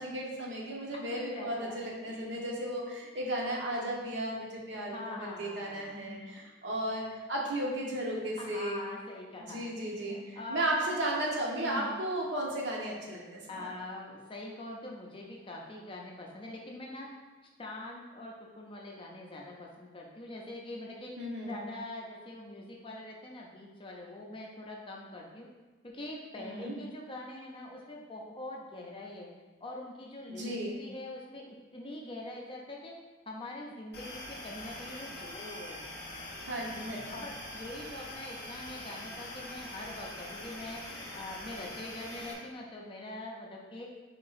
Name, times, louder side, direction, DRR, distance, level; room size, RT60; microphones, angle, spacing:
voice 1, 0.0-8.8 9.4-10.2 10.5-13.7 21.2-21.6 26.4-26.8 30.3-30.8 36.4-37.2, right 1 dB, 65° right, -3 dB, 0.9 m, -35 dB
voice 2, 0.9-2.4 4.9-6.4 8.4-10.8 11.5-11.9 13.5-17.1 17.6-21.1 21.4-25.5 25.8-29.3 29.6-32.9 33.3-35.9 37.1-40.8 41.1-43.9, left 1 dB, 25° left, -1 dB, 0.5 m, -44 dB
sound 1, 33.9-42.3, left 1 dB, 55° left, 0.8 m, -43 dB
3.7 x 2.9 x 4.0 m, 1.3 s
head